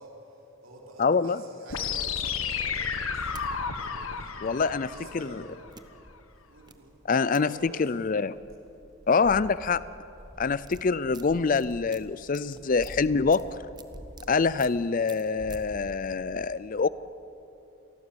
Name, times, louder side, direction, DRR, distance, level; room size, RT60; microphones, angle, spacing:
voice 1, 0.0-3.3 3.7-5.6 6.4-8.0, right 1 dB, 75° right, -1 dB, 4.3 m, -49 dB
voice 2, 1.0-1.4 4.4-5.4 7.1-8.4 9.1-9.8 10.4-13.4 14.3-16.9, left 4 dB, 40° left, 17 dB, 0.4 m, -25 dB
sound 1, 1.7-5.7, left 6 dB, 90° left, 1.6 m, -32 dB
sound 2, 2.9-3.4 4.4-4.5 5.7-5.8 6.6-6.7 7.3-7.5 8.9-9.0 9.3-9.6 10.2-14.3 14.6-14.8 15.0-15.6, right 6 dB, 20° right, 0.9 m, -50 dB
sound 3, 4.8-7.1 7.5-12.1 12.5-14.8 15.2-16.2, equal, ahead, 2.1 m, -47 dB
27.0 x 19.5 x 7.0 m, 2.9 s
head